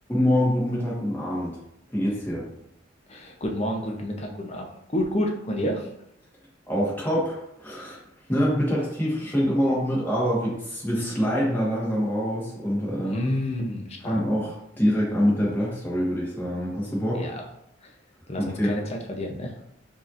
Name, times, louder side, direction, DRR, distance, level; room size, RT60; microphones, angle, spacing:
voice 1, 0.1-1.6 1.9-2.4 6.7-8.0 8.3-13.2 14.0-17.3 18.4-18.7, equal, 10° left, -6 dB, 1.3 m, -25 dB
voice 2, 3.1-4.6 4.9-5.9 13.0-14.2 17.1-17.4 17.8-17.9 18.3-19.6, left 1 dB, 35° left, 1 dB, 0.6 m, -29 dB
5.3 x 2.8 x 2.5 m, 0.78 s
head